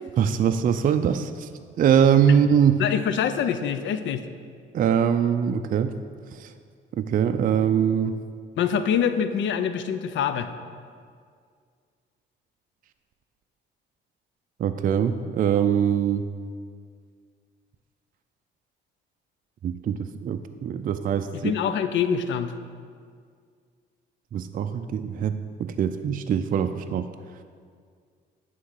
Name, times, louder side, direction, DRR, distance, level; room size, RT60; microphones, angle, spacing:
voice 1, 0.2-1.5 1.8-2.8 4.7-6.0 6.4-6.5 7.0-8.2 14.6-16.2 19.6-21.5 24.3-27.0, right 8 dB, 45° right, 8 dB, 0.4 m, -22 dB
voice 2, 2.8-4.2 8.6-10.5 21.3-22.5, left 7 dB, 70° left, 11 dB, 0.5 m, -25 dB
9.4 x 3.9 x 6.3 m, 2.1 s
cardioid pair, 90°, 20 cm